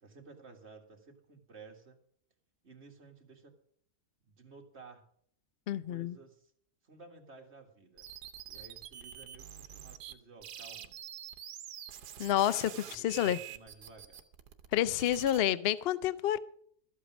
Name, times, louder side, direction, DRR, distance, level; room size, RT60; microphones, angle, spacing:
voice 1, 0.0-2.0 2.6-3.6 4.2-5.0 5.8-6.5 6.8-8.1 8.5-10.9 12.5-14.2, right 4 dB, 45° right, 2.0 m, -54 dB
voice 2, 5.7-6.2 12.2-13.4 14.7-16.4, left 11 dB, 75° left, 0.5 m, -29 dB
sound 1, 8.0-10.1 10.4-15.4, right 10 dB, 80° right, 1.4 m, -46 dB
13.5 x 8.3 x 6.0 m
omnidirectional pair, 1.7 m